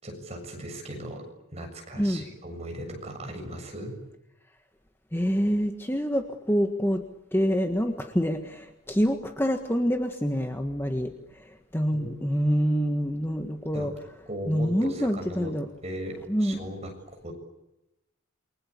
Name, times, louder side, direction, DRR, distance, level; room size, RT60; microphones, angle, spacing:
voice 1, 0.0-4.0 11.9-12.2 13.7-14.0 14.3-15.6 15.8-16.9 17.2-17.3, right 1 dB, 30° right, 3 dB, 7.1 m, -38 dB
voice 2, 5.1-7.0 7.3-11.1 11.4-11.5 11.7-13.9 14.5-15.7 16.3-16.6, equal, 10° left, 5 dB, 1.6 m, -26 dB
29.0 x 24.5 x 8.5 m, 0.92 s
head